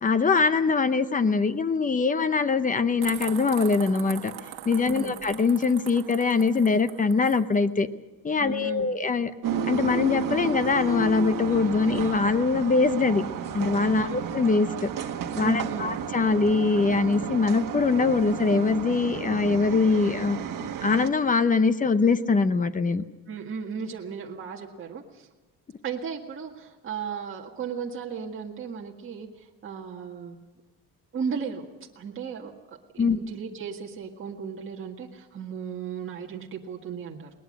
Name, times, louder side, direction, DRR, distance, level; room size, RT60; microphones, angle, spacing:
voice 1, 0.0-4.3 4.7-7.9 8.2-9.3 9.7-13.2 13.5-14.9 15.4-23.0 33.0-33.2, left 4 dB, 20° left, 12 dB, 0.7 m, -23 dB
sound 1, 3.0-7.4, right 12 dB, 80° right, 1.4 m, -40 dB
voice 2, 4.8-5.1 8.4-8.9 14.0-14.2 15.4-15.9 23.3-25.3 25.8-30.4 31.1-31.6 32.0-37.3, right 6 dB, 30° right, -1 dB, 1.8 m, -35 dB
sound 2, 9.4-21.1, right 6 dB, 55° right, 1.6 m, -32 dB
21.0 x 19.5 x 6.5 m, 1.2 s
cardioid pair, 165°, 38 cm